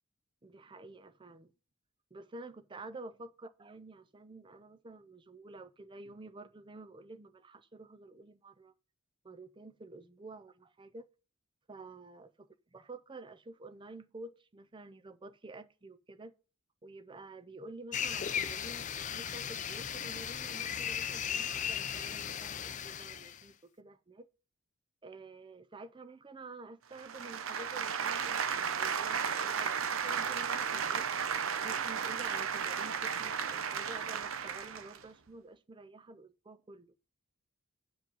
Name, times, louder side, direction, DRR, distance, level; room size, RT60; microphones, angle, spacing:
voice 1, 0.4-1.5 2.1-8.7 9.2-11.1 11.7-16.3 16.8-24.3 25.0-31.1 31.6-37.0, right 2 dB, 20° right, 0.5 m, -50 dB
sound 1, 17.9-23.4, left 8 dB, 35° left, 0.4 m, -37 dB
sound 2, 27.0-35.0, right 7 dB, 70° right, 0.6 m, -34 dB
9.4 x 5.0 x 5.2 m
head